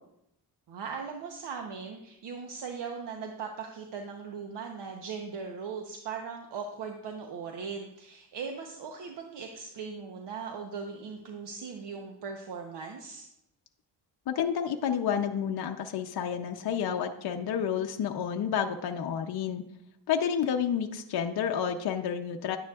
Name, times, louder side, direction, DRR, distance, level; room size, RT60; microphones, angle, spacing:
voice 1, 0.7-13.3, right 5 dB, 75° right, 3 dB, 0.9 m, -39 dB
voice 2, 14.3-19.6 20.1-22.6, left 8 dB, 60° left, 4 dB, 0.6 m, -30 dB
11.0 x 9.3 x 2.4 m, 0.81 s
wide cardioid pair, 125°, 42 cm